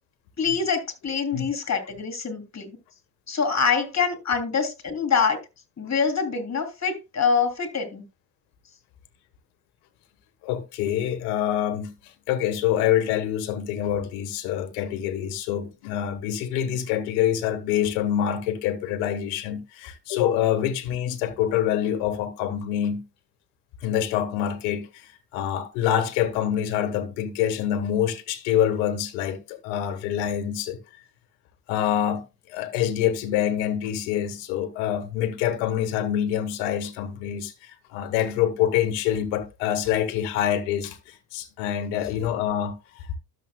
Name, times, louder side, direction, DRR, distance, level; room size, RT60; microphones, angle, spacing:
voice 1, 0.4-2.8 3.3-5.4 5.8-8.0, left 5 dB, 35° left, 3.3 m, -25 dB
voice 2, 10.4-23.0 23.8-30.8 31.7-32.2 32.5-43.2, left 10 dB, 85° left, 1.5 m, -26 dB
12.5 x 7.3 x 2.3 m
supercardioid pair, 70°, 46 cm